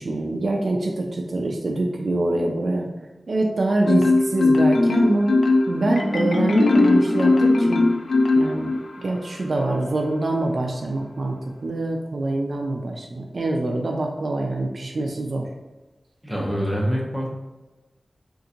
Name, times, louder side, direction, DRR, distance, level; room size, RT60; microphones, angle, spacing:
voice 1, 0.0-2.9 3.3-5.4 5.7-7.8 8.3-15.5, right 2 dB, 65° right, 1 dB, 0.3 m, -25 dB
Marimba xylophone, 3.9-9.0, left 2 dB, 75° left, 0.4 m, -18 dB
voice 2, 16.2-17.3, equal, 5° right, -4 dB, 0.8 m, -25 dB
3.7 x 2.5 x 2.8 m, 1.1 s
wide cardioid pair, 95°, 0 cm